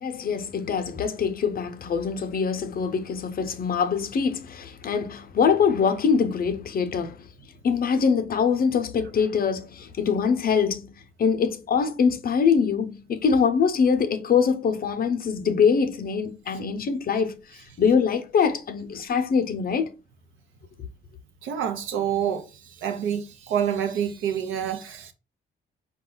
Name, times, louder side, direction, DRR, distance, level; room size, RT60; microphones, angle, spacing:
voice 1, 0.0-7.3 7.6-10.9 11.2-17.4 17.8-19.9, left 6 dB, 50° left, 0.6 m, -23 dB
voice 2, 21.4-25.1, right 9 dB, 85° right, 0.7 m, -27 dB
4.5 x 2.3 x 3.8 m
cardioid pair, 90°, 20 cm